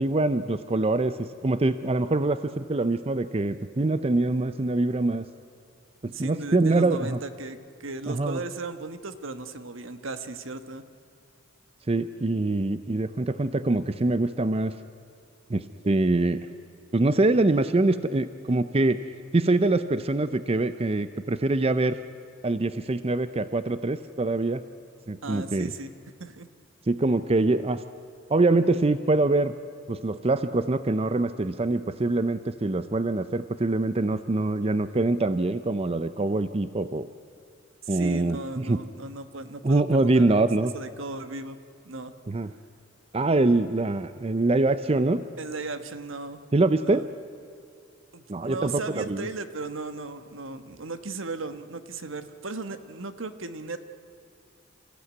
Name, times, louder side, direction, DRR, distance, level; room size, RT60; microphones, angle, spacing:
voice 1, 0.0-5.2 6.0-7.2 8.1-8.4 11.9-14.8 15.5-16.4 16.9-19.0 19.3-22.0 22.4-24.6 25.1-25.7 26.9-27.8 28.3-29.5 29.9-37.1 37.9-38.8 39.6-40.7 42.3-42.5 43.1-45.3 46.5-47.1 48.3-49.3, right 2 dB, 30° right, 12 dB, 0.5 m, -24 dB
voice 2, 6.0-10.8 25.2-25.9 26.2-26.5 37.8-40.4 40.7-41.6 41.8-42.1 45.4-46.4 46.8-47.0 48.1-53.8, right 3 dB, 70° right, 10 dB, 1.3 m, -36 dB
28.0 x 15.5 x 9.5 m, 2.5 s
head